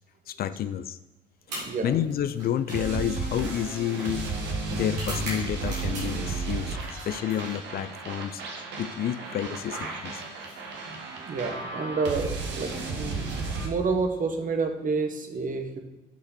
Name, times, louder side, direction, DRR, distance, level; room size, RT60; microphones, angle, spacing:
voice 1, 0.3-1.0 1.8-4.3 4.7-8.4 8.8-10.2, left 10 dB, 50° left, 13 dB, 0.5 m, -30 dB
sound 1, 1.4-6.3 6.7-8.0 9.2-11.0 12.1-12.3 13.1-14.3, right 1 dB, 90° right, 3.0 m, -43 dB
voice 2, 1.5-2.0 5.1-5.3 6.9-7.1 9.4-9.8 10.4-10.5 11.1-15.8, right 4 dB, 40° right, 5 dB, 1.4 m, -30 dB
sound 2, 2.7-13.7, right 3 dB, 60° right, 1.6 m, -33 dB
8.5 x 5.6 x 4.3 m, 1.1 s
hypercardioid pair, 55°, 20 cm